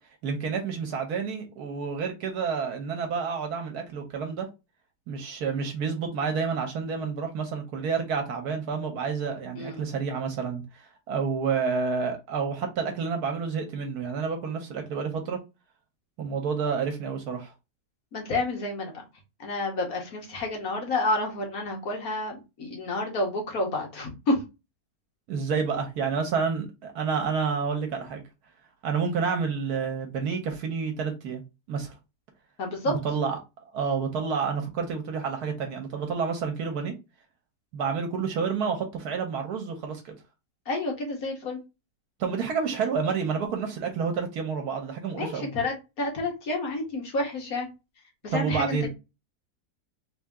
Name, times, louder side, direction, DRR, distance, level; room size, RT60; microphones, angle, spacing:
voice 1, 0.2-4.5 5.1-15.4 16.2-17.5 25.3-28.2 28.8-31.4 31.7-31.9 32.9-33.4 33.7-36.9 37.7-40.2 42.2-45.5 48.3-48.9, right 5 dB, 75° right, 1.3 m, -29 dB
voice 2, 18.1-18.9 19.4-24.4 32.6-33.0 40.7-41.6 45.2-47.7 48.2-48.9, left 2 dB, 65° left, 1.6 m, -29 dB
3.5 x 2.7 x 3.5 m
omnidirectional pair, 1.7 m